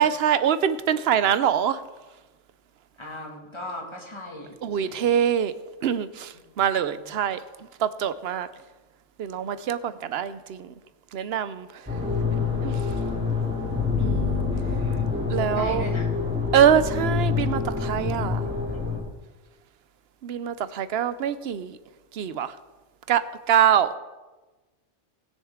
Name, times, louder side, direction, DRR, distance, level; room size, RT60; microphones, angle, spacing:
voice 1, 0.0-1.8 4.6-5.5 5.8-7.4 7.8-8.5 9.2-10.7 11.1-11.8 12.6-12.8 14.0-14.4 15.3-15.8 16.5-18.5 20.2-21.8 22.1-22.6 23.1-23.9, right 9 dB, 65° right, 14 dB, 0.8 m, -24 dB
voice 2, 3.0-5.0 6.9-7.1 14.2-15.1 15.4-16.1 18.3-19.1, left 1 dB, 25° left, -1 dB, 2.1 m, -39 dB
sound 1, 11.9-19.0, left 5 dB, 10° right, 2.4 m, -26 dB
19.0 x 6.7 x 3.6 m, 1.2 s
omnidirectional pair, 1.2 m